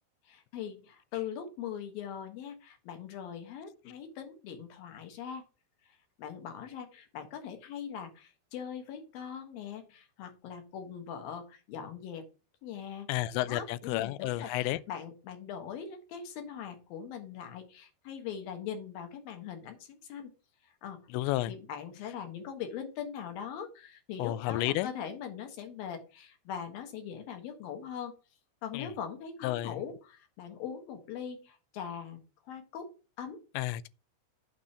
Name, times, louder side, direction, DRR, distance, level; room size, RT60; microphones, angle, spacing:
voice 1, 0.3-5.5 5.9-12.3 12.6-13.1 13.5-20.3 20.6-21.1 21.5-28.1 28.6-32.2 32.4-33.4, left 8 dB, 60° left, 2.9 m, -41 dB
voice 2, 13.1-14.8 21.1-21.5 24.2-24.9 28.7-28.9 29.4-29.8 33.6-33.9, left 16 dB, 85° left, 2.7 m, -31 dB
8.7 x 4.0 x 6.4 m
omnidirectional pair, 5.5 m